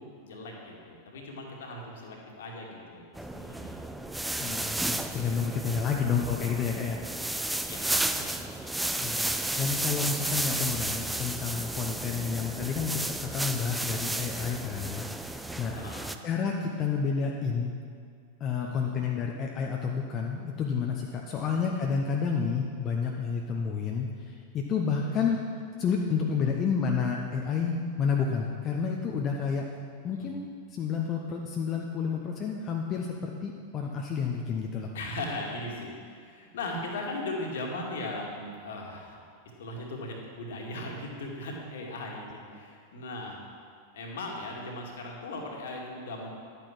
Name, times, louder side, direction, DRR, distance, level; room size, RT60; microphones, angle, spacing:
voice 1, 0.0-3.8 7.6-8.4 12.0-12.4 15.7-16.2 18.6-19.0 21.3-21.6 25.1-25.4 30.2-30.3 34.9-39.2 39.6-43.4 43.9-46.3, left 2 dB, 60° left, -1 dB, 2.2 m, -38 dB
sound 1, 3.1-16.1, right 1 dB, 5° right, 0.6 m, -33 dB
voice 2, 4.4-7.0 9.0-15.7 16.2-17.7 18.4-25.4 25.8-29.7 30.0-30.4 30.7-34.9, left 6 dB, 30° left, 0 dB, 1.0 m, -30 dB
12.0 x 9.0 x 6.0 m, 2.2 s
figure-of-eight pair, 90°, 0 cm